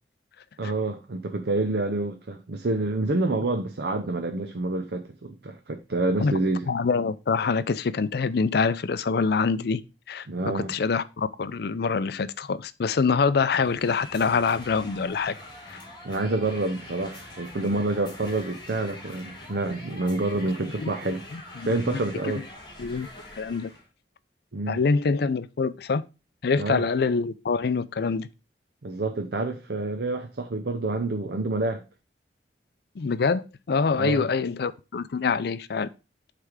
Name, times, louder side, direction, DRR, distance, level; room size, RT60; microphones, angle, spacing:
voice 1, 0.6-6.7 10.3-10.8 16.0-21.2 21.6-22.4 24.5-24.8 26.6-26.8 28.8-31.8 33.9-34.3, right 2 dB, 65° right, 0.6 m, -28 dB
voice 2, 6.7-9.8 10.1-10.3 10.5-15.3 15.7-15.8 20.8-20.9 21.3-22.0 22.8-23.1 23.4-23.7 24.7-26.0 26.4-28.3 33.0-35.9, left 5 dB, 60° left, 0.5 m, -25 dB
sound 1, 13.5-23.9, left 1 dB, 25° left, 2.8 m, -44 dB
8.2 x 3.4 x 4.8 m
head